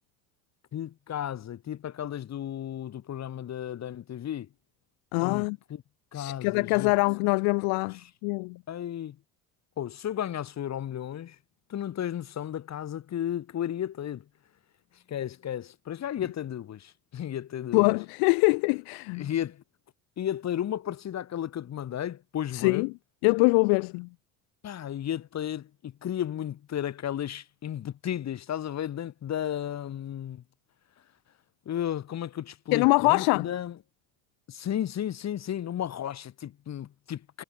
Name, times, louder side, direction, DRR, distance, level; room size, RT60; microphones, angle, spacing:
voice 1, 0.7-4.5 5.2-5.8 6.1-6.9 8.7-9.2 9.8-11.4 11.7-14.2 15.1-18.0 19.2-19.6 20.2-22.9 24.6-30.4 31.6-33.8 34.5-37.4, left 10 dB, 45° left, 3.0 m, -34 dB
voice 2, 5.1-5.6 6.1-8.6 17.7-19.3 22.5-22.9 23.2-24.1 32.7-33.5, left 36 dB, 70° left, 0.7 m, -24 dB
supercardioid pair, 90°, 38 cm